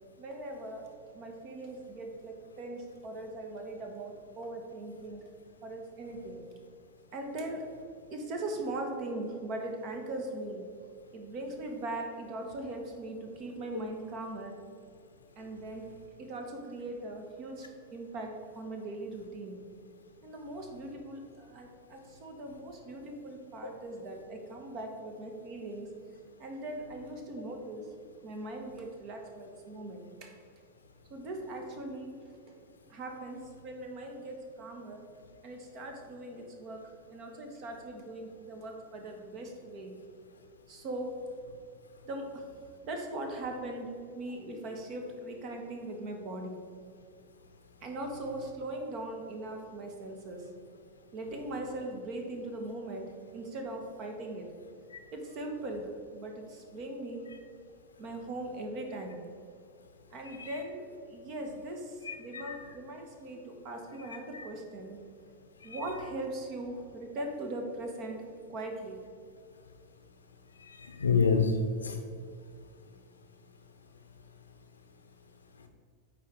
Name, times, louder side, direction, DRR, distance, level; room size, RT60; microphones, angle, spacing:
voice 1, 0.2-0.8 1.1-5.2 5.6-6.4 7.1-7.6 8.1-10.7 11.1-14.6 15.3-15.8 16.2-19.6 20.2-25.9 26.4-27.9 28.2-30.3 31.1-32.1 32.9-35.0 35.4-36.8 37.1-39.9 40.7-41.1 42.0-42.4 42.8-43.9 44.1-46.5 47.8-50.5 51.1-54.5 55.1-57.2 58.0-59.2 60.1-65.0 65.6-68.2 68.5-69.0, right 2 dB, 40° right, 3 dB, 1.3 m, -40 dB
voice 2, 62.1-62.6 64.3-64.4 70.8-71.5 71.8-72.0, left 6 dB, 75° left, 5 dB, 0.8 m, -27 dB
9.0 x 3.8 x 4.7 m, 2.2 s
figure-of-eight pair, 90°, 0 cm